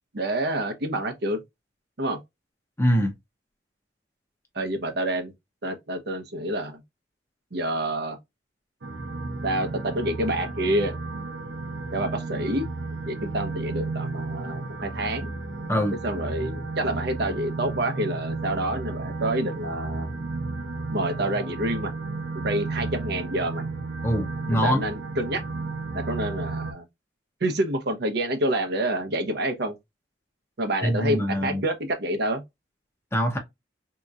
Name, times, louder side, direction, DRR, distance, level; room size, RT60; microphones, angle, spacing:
voice 1, 0.1-1.4 2.0-2.2 4.5-5.3 5.6-6.8 7.5-8.2 9.4-10.9 11.9-12.7 13.0-15.3 16.0-20.1 20.9-21.9 22.4-23.6 24.5-25.4 25.9-26.9 27.4-29.8 30.6-32.4, right 1 dB, 60° right, 0.8 m, -28 dB
voice 2, 2.8-3.1 15.7-16.0 24.0-24.8 30.8-31.6 33.1-33.4, equal, 15° left, 0.8 m, -23 dB
sound 1, 8.8-26.7, right 3 dB, 90° right, 0.7 m, -33 dB
3.7 x 2.9 x 2.3 m
head